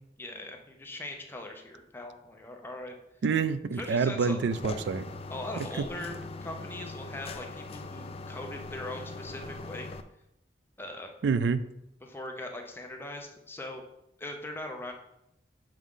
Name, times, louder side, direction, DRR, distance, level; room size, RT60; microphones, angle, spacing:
voice 1, 0.2-2.9 3.7-4.4 5.3-9.9 10.8-11.1 12.0-13.8 14.2-14.9, left 1 dB, 15° left, 2 dB, 0.7 m, -40 dB
voice 2, 3.2-5.0 11.2-11.6, right 5 dB, 85° right, 13 dB, 0.4 m, -27 dB
sound 1, 4.5-10.0, left 3 dB, 35° left, 0.3 m, -41 dB
7.3 x 3.7 x 3.7 m, 0.83 s
head